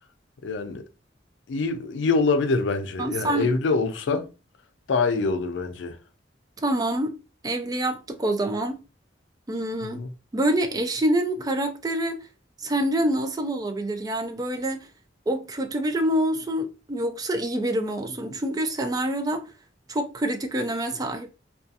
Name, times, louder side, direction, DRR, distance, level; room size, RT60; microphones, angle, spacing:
voice 1, 0.4-0.8 1.5-4.3 4.9-6.0 9.8-10.1, left 4 dB, 90° left, 0.4 m, -25 dB
voice 2, 3.0-3.5 4.1-4.2 6.6-7.2 7.4-8.8 9.5-10.0 10.3-12.3 12.6-14.9 15.3-19.4 19.9-21.3, right 1 dB, 20° right, 0.3 m, -26 dB
2.6 x 2.3 x 2.4 m
head